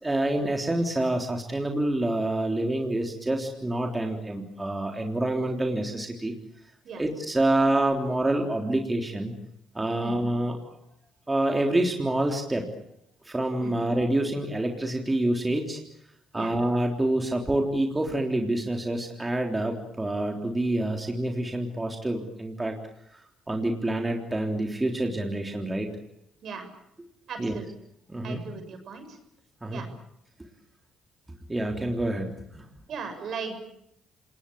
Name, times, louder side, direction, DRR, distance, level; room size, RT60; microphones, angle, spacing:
voice 1, 0.0-6.3 7.0-9.3 9.7-10.6 11.3-12.7 13.3-15.8 16.3-22.8 23.5-25.9 27.4-27.6 28.1-28.4 29.6-29.8 31.5-32.6, right 1 dB, 15° right, 2 dB, 3.5 m, -27 dB
voice 2, 27.3-27.6 28.2-29.2 29.7-29.9 32.9-33.7, right 5 dB, 60° right, 7 dB, 6.9 m, -37 dB
28.0 x 19.5 x 8.5 m, 0.77 s
supercardioid pair, 80°, 0 cm